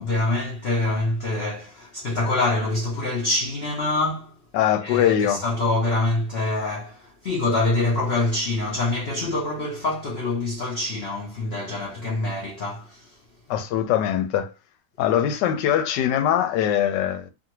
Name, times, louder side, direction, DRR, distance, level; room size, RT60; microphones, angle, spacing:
voice 1, 0.0-4.3 4.8-13.2, left 2 dB, 65° left, 0.6 m, -25 dB
voice 2, 4.5-5.4 13.5-14.5 15.0-17.3, left 10 dB, 85° left, 1.2 m, -22 dB
2.6 x 2.6 x 2.8 m
omnidirectional pair, 1.8 m